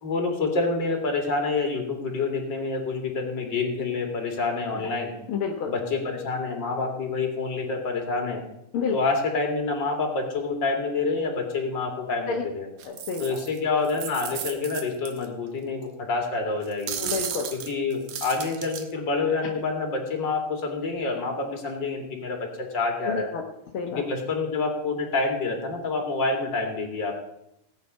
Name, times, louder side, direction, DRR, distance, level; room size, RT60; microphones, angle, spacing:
voice 1, 0.0-5.1 5.7-8.4 8.9-12.7 13.2-17.0 17.5-23.3 23.9-27.1, left 3 dB, 35° left, 2 dB, 2.7 m, -27 dB
voice 2, 5.3-5.7 8.7-8.9 12.3-12.4 12.8-13.4 17.0-17.5 23.1-23.4 23.7-24.0, left 5 dB, 60° left, 1 dB, 1.4 m, -29 dB
sound 1, 12.8-13.6 13.8-15.3 15.8-15.9 16.6-18.8, right 8 dB, 65° right, 2.0 m, -34 dB
17.5 x 9.4 x 5.4 m, 0.82 s
omnidirectional pair, 3.9 m